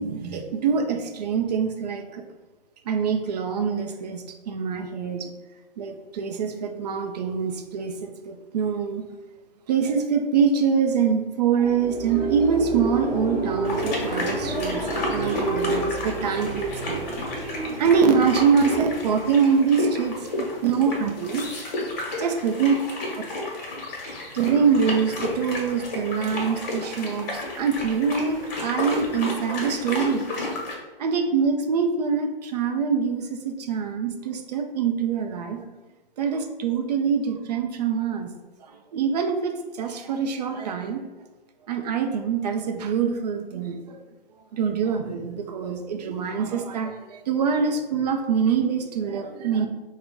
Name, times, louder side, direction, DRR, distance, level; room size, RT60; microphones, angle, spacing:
voice 1, 0.0-2.2 2.9-5.3 5.8-9.1 9.7-17.0 17.5-21.4 22.2-22.7 23.1-23.2 24.3-30.2 31.0-35.6 36.2-38.3 38.7-41.0 41.7-44.0 44.5-49.7, right 6 dB, 45° right, 5 dB, 0.4 m, -24 dB
sound 1, 11.4-20.0, right 2 dB, 10° right, 0.8 m, -30 dB
sound 2, 13.6-30.7, left 2 dB, 45° left, 1.0 m, -32 dB
3.7 x 2.1 x 3.5 m, 1.2 s
figure-of-eight pair, 120°, 29 cm